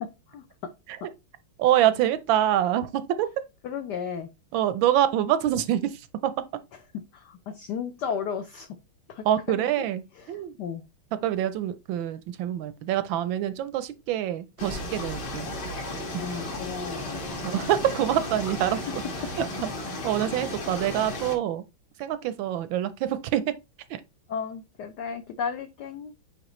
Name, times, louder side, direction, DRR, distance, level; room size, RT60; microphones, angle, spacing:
voice 1, 0.0-0.4 3.6-4.3 7.1-8.7 9.1-9.7 10.1-10.8 16.2-17.2 18.7-18.8 24.3-26.1, left 6 dB, 75° left, 1.0 m, -34 dB
voice 2, 1.6-3.3 4.5-6.3 9.2-10.5 11.1-15.5 17.4-18.8 19.4-19.7 20.0-21.6 22.0-23.5 23.9-24.0, right 11 dB, 75° right, 1.2 m, -26 dB
sound 1, 14.6-21.3, left 1 dB, 50° left, 2.3 m, -34 dB
8.8 x 3.5 x 3.1 m
omnidirectional pair, 2.4 m